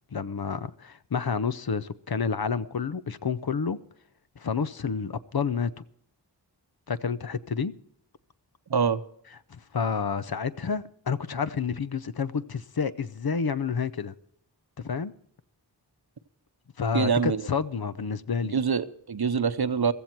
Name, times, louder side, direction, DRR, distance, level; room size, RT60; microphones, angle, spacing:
voice 1, 0.1-3.8 4.4-5.7 6.9-7.7 9.5-14.1 14.8-15.1 16.8-18.6, left 6 dB, 60° left, 0.7 m, -29 dB
voice 2, 8.7-9.0 16.9-17.4 18.5-19.9, right 6 dB, 65° right, 0.8 m, -25 dB
15.5 x 14.5 x 4.5 m
wide cardioid pair, 50°, 41 cm